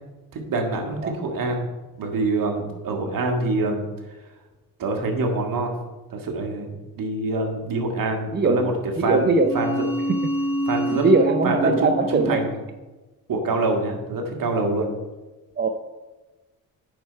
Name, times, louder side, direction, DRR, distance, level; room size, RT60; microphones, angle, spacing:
voice 1, 0.3-1.7 2.0-3.9 4.8-5.7 6.1-9.8 10.7-11.1 11.4-12.5 13.3-14.9, right 2 dB, 60° right, 2 dB, 1.9 m, -25 dB
voice 2, 8.3-8.6 9.0-9.5 10.9-12.4 15.6-15.7, right 3 dB, 25° right, 7 dB, 0.6 m, -20 dB
sound 1, 9.3-12.5, equal, 10° left, 2.0 m, -27 dB
9.3 x 4.5 x 5.6 m, 1.2 s
cardioid pair, 85°, 38 cm